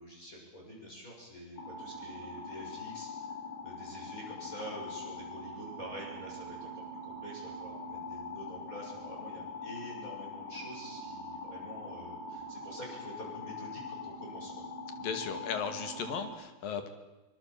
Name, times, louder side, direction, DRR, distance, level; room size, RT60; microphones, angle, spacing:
voice 1, 0.0-3.3 3.6-14.5, equal, 15° left, -1 dB, 6.9 m, -47 dB
sound 1, 1.6-16.3, left 2 dB, 35° left, 5.7 m, -43 dB
voice 2, 15.0-16.9, left 6 dB, 55° left, 8 dB, 3.4 m, -36 dB
24.0 x 22.0 x 7.5 m, 1.1 s
omnidirectional pair, 5.2 m